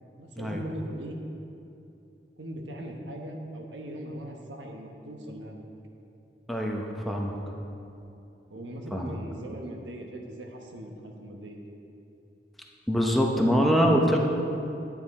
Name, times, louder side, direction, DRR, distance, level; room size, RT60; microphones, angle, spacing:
voice 1, 0.2-1.2 2.4-5.6 8.5-11.6, right 1 dB, 85° right, 1 dB, 1.2 m, -39 dB
voice 2, 6.5-7.3 8.9-9.2 12.9-14.2, equal, ahead, 0 dB, 0.8 m, -24 dB
10.0 x 8.9 x 4.2 m, 2.7 s
head